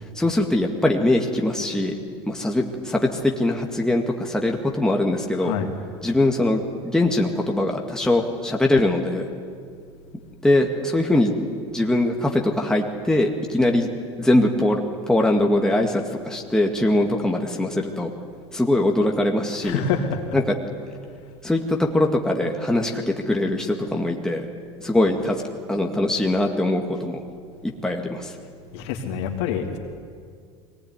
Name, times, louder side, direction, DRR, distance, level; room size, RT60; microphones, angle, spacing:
voice 1, 0.0-1.9 2.3-5.5 6.0-9.2 10.4-11.3 11.7-13.9 14.2-18.1 18.5-19.8 20.3-20.5 21.4-24.5 24.8-25.4 25.7-27.2 27.6-28.3, left 1 dB, 5° left, 0 dB, 2.1 m, -22 dB
voice 2, 5.3-5.7 19.6-20.2 28.7-29.8, left 6 dB, 70° left, 2 dB, 3.1 m, -26 dB
22.0 x 19.0 x 9.7 m, 2.2 s
supercardioid pair, 100°, 14 cm